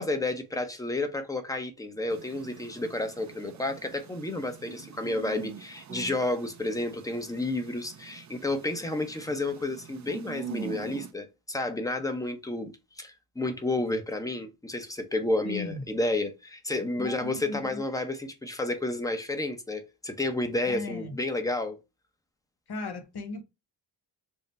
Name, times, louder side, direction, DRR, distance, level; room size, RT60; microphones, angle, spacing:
voice 1, 0.0-21.8, left 2 dB, 10° left, 0.7 m, -31 dB
sound 1, 2.1-11.1, right 6 dB, 40° right, 0.4 m, -44 dB
voice 2, 15.4-15.8 17.0-17.8 20.7-21.2 22.7-23.4, left 3 dB, 55° left, 1.0 m, -36 dB
3.7 x 2.1 x 4.0 m
wide cardioid pair, 100°, 45 cm